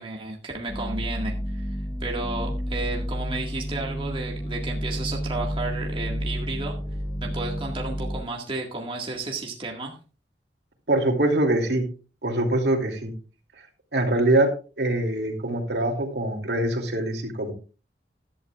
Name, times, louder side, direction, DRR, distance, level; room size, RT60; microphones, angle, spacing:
voice 1, 0.0-1.7 2.0-6.8 7.2-10.0, right 2 dB, 30° right, 0 dB, 1.9 m, -33 dB
sound 1, 0.7-8.2, equal, 30° left, 7.2 m, -30 dB
voice 2, 10.9-11.9 12.2-13.1 13.9-14.5 14.8-17.5, right 1 dB, 70° right, 3 dB, 2.8 m, -23 dB
15.5 x 11.5 x 2.4 m, 0.36 s
head